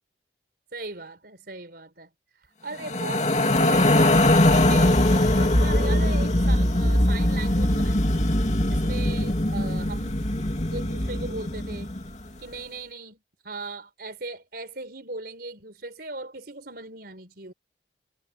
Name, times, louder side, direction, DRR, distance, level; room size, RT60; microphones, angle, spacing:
voice 1, 0.7-2.1 2.6-4.3 4.5-8.2 8.7-11.9 12.4-17.5, right 2 dB, 55° right, 4.7 m, -38 dB
sound 1, 2.8-12.1, left 1 dB, 40° left, 2.7 m, -21 dB
head